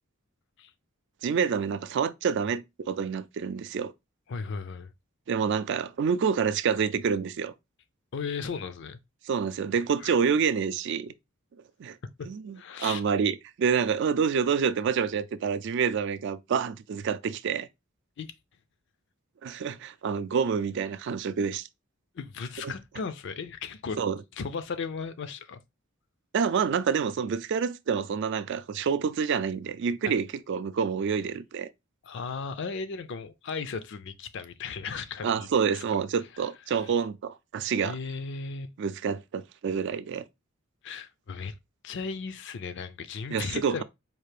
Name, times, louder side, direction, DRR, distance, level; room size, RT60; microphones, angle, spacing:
voice 1, 1.2-3.9 5.3-7.5 9.2-11.1 11.8-12.0 12.3-17.7 19.4-21.7 22.6-22.7 24.0-24.2 26.3-31.7 35.2-38.0 38.8-40.2 43.3-43.8, right 6 dB, 55° right, 0.3 m, -28 dB
voice 2, 4.3-4.9 8.1-9.0 10.0-10.1 12.2-12.3 12.6-13.0 18.2-18.3 22.1-24.0 24.4-25.6 30.0-30.1 32.0-35.5 35.7-35.8 36.7-36.8 37.8-38.7 40.8-41.6 41.8-43.8, left 5 dB, 55° left, 0.4 m, -36 dB
4.5 x 2.4 x 3.2 m
head